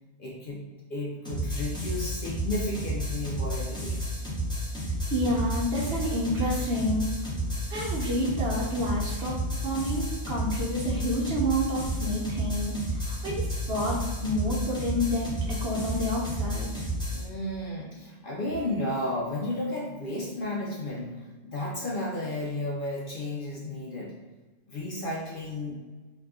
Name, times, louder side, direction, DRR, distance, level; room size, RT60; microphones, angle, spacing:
voice 1, 0.2-0.6 0.9-4.0 17.1-21.1 21.4-24.1 24.7-25.8, left 1 dB, 55° left, -3 dB, 0.6 m, -33 dB
sound 1, 1.2-17.2, equal, 5° left, 0.6 m, -32 dB
voice 2, 5.1-7.1 7.7-9.4 9.6-16.8, equal, 60° right, -5 dB, 1.0 m, -29 dB
2.7 x 2.4 x 3.5 m, 1.2 s
omnidirectional pair, 1.2 m